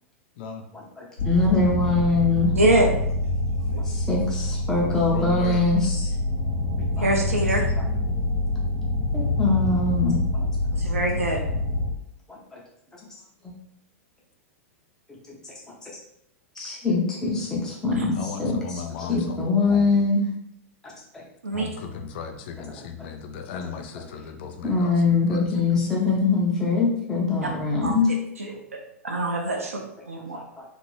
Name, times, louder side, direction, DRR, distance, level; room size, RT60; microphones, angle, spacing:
voice 1, 0.7-2.5 3.9-6.1 7.0-7.1 9.1-10.4 12.3-12.6 13.4-13.5 15.8-15.9 16.6-20.3 23.0-23.1 24.0-24.1 24.6-28.1 30.3-30.6, left 3 dB, 5° left, -5 dB, 0.7 m, -23 dB
sound 1, 1.2-11.9, left 2 dB, 75° left, 1.1 m, -26 dB
voice 2, 2.6-2.9 3.7-3.8 4.8-4.9 7.0-7.7 10.8-11.4 18.0-18.1 21.4-21.7 27.8-27.9 28.4-28.6 29.0-29.8 30.1-30.4, right 2 dB, 75° right, 1 dB, 0.5 m, -24 dB
voice 3, 5.1-5.7 18.2-20.0 21.5-25.4, left 6 dB, 45° left, 5 dB, 0.4 m, -36 dB
2.9 x 2.6 x 2.9 m, 0.75 s
figure-of-eight pair, 95°, 8 cm